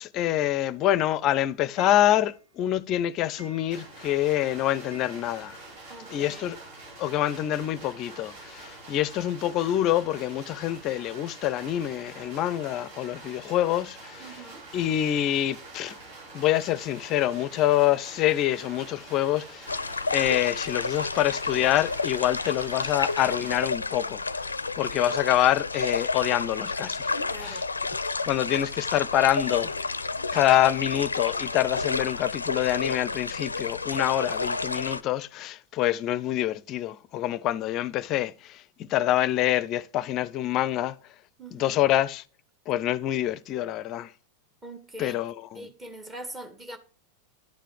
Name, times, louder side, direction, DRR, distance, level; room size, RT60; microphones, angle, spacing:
voice 1, 0.0-5.6 6.1-6.6 7.0-14.2 14.7-15.9 16.3-19.9 20.1-27.6 28.2-29.8 30.3-41.0 41.5-42.2 42.7-44.1 45.0-45.6, left 13 dB, 35° left, 0.6 m, -26 dB
Clock, 0.8-5.9 6.2-6.3 6.5-6.6 6.8-6.9 8.1-8.2 8.8-8.9 9.4-9.5 10.0-10.1 10.7-10.8 11.3-11.4, equal, 70° right, 3.1 m, -53 dB
sound 1, 3.7-23.6, right 2 dB, 55° right, 4.4 m, -46 dB
voice 2, 5.9-6.6 14.2-14.7 27.1-27.6 41.4-41.8 42.7-42.8 44.6-45.2 45.5-46.8, right 1 dB, 15° right, 1.9 m, -43 dB
sound 2, 19.7-35.0, left 3 dB, 80° left, 0.6 m, -31 dB
12.0 x 7.5 x 5.0 m
figure-of-eight pair, 90°, 0 cm